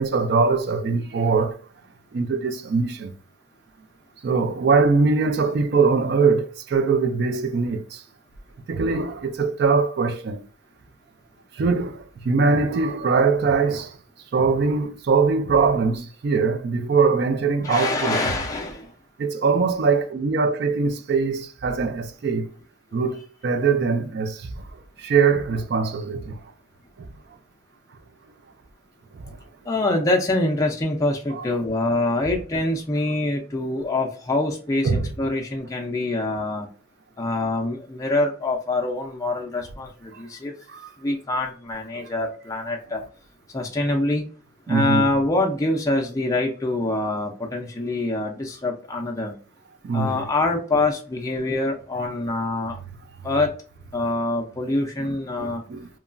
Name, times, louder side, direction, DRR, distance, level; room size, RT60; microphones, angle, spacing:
voice 1, 0.0-1.6 2.1-3.1 4.2-8.0 8.7-10.4 11.6-14.0 14.3-18.2 19.2-22.5 22.9-24.5 25.0-26.4 27.0-27.1 29.2-29.4 31.3-31.5 34.8-35.1 40.7-40.9 41.9-42.0 44.7-45.1 49.8-50.3 55.0-55.9, right 4 dB, 55° right, 0.4 m, -22 dB
voice 2, 17.6-18.9 29.7-36.7 37.2-40.5 41.0-43.0 43.5-44.2 44.7-49.3 49.9-52.8 53.2-53.5 53.9-55.6, left 2 dB, 15° left, 0.4 m, -25 dB
2.9 x 2.3 x 2.4 m
head